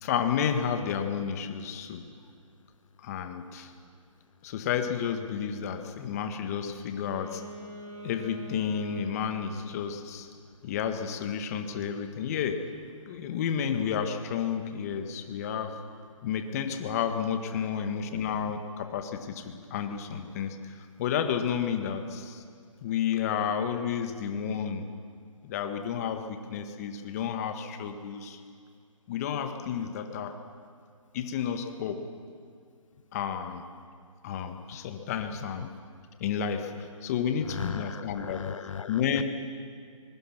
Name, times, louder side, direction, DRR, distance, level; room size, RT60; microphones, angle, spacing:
voice 1, 0.0-2.1 3.0-3.7 4.4-7.4 8.0-10.3 10.6-12.6 13.1-15.7 16.2-20.6 21.0-22.4 22.8-24.9 25.4-28.4 29.1-30.3 31.1-32.0 33.1-33.6 34.2-35.7 36.2-38.4 38.9-39.2, left 7 dB, 30° left, 7 dB, 1.6 m, -31 dB
Wind instrument woodwind instrument, 6.8-9.7, right 1 dB, 20° right, 2.8 m, -44 dB
voice 2, 37.5-39.2, left 7 dB, 65° left, 17 dB, 0.5 m, -38 dB
24.5 x 22.5 x 6.1 m, 2.2 s
figure-of-eight pair, 150°, 18 cm